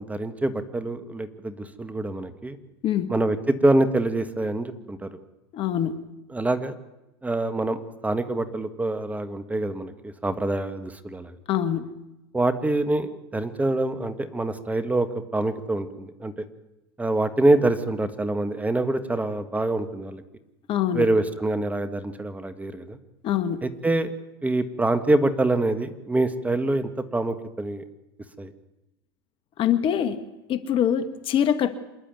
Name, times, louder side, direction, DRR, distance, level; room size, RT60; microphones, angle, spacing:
voice 1, 0.0-2.6 3.1-5.1 6.3-6.7 7.2-11.3 12.3-15.1 15.3-16.4 17.0-20.2 20.9-23.0 23.6-24.1 24.4-27.8 28.4-28.5, right 2 dB, 10° right, 10 dB, 1.6 m, -25 dB
voice 2, 5.5-6.1 11.5-12.0 20.7-21.1 23.2-23.7 29.6-30.2 30.5-31.7, left 9 dB, 40° left, 11 dB, 1.6 m, -24 dB
27.0 x 11.0 x 9.5 m, 0.97 s
hypercardioid pair, 95°, 13 cm